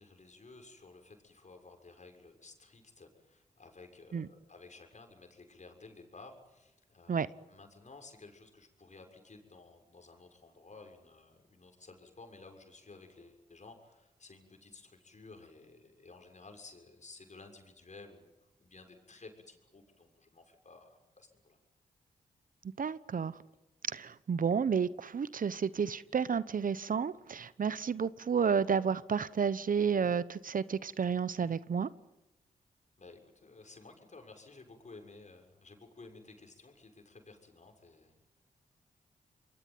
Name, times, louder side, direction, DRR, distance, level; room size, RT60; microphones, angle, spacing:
voice 1, 0.0-21.6 33.0-38.3, left 3 dB, 45° left, 4 dB, 6.8 m, -54 dB
voice 2, 22.8-23.3 23.9-31.9, right 6 dB, 60° right, 17 dB, 1.0 m, -31 dB
27.0 x 22.0 x 9.4 m, 0.98 s
supercardioid pair, 45°, 16 cm